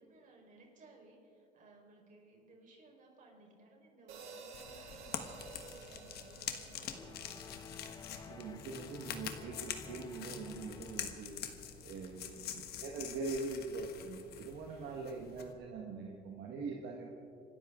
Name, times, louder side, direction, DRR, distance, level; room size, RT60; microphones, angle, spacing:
voice 1, 0.0-7.4 11.9-12.8 14.7-15.0, right 2 dB, 50° right, 0 dB, 4.6 m, -61 dB
sound 1, 4.1-8.5, right 4 dB, 90° right, 3.0 m, -53 dB
sound 2, 4.5-15.5, left 9 dB, 70° left, 1.4 m, -46 dB
sound 3, 6.8-11.5, left 5 dB, 20° left, 0.5 m, -52 dB
voice 2, 8.3-11.4 11.8-12.5 12.8-17.1, right 3 dB, 75° right, 0 dB, 1.6 m, -42 dB
26.5 x 13.0 x 3.8 m, 2.5 s
cardioid pair, 110°, 17 cm